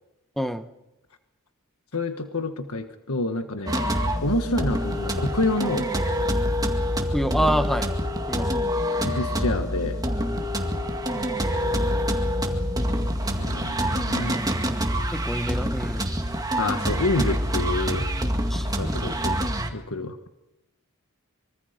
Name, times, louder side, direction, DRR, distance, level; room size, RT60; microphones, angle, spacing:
voice 1, 0.4-0.7 7.1-7.9 8.3-8.7 15.1-16.1 18.5-19.2 19.9-20.1, equal, ahead, 9 dB, 1.2 m, -28 dB
voice 2, 1.9-3.9 4.2-5.9 9.0-10.0 12.9-14.4 16.6-18.0 18.8-19.4 19.7-20.2, left 2 dB, 80° left, 7 dB, 1.6 m, -28 dB
sound 1, 3.7-19.7, equal, 15° right, 2.0 m, -26 dB
25.0 x 24.0 x 5.2 m, 0.96 s
head